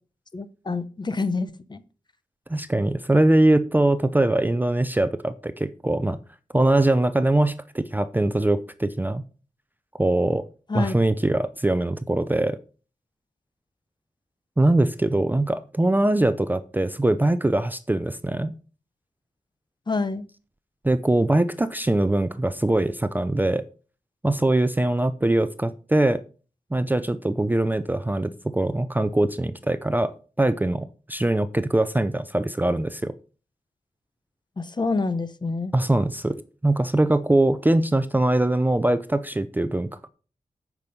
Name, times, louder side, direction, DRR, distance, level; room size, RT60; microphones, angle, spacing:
voice 1, 0.3-1.8 10.7-10.9 19.9-20.3 34.6-35.7, left 3 dB, 30° left, 13 dB, 0.7 m, -27 dB
voice 2, 2.5-6.2 6.5-9.2 10.0-10.4 10.7-12.6 14.6-18.5 20.8-23.6 24.2-26.2 26.7-30.1 30.4-33.1 35.7-36.4 36.6-40.1, right 1 dB, 15° right, 12 dB, 0.5 m, -22 dB
8.9 x 6.1 x 5.3 m, 0.37 s
wide cardioid pair, 135°, 14 cm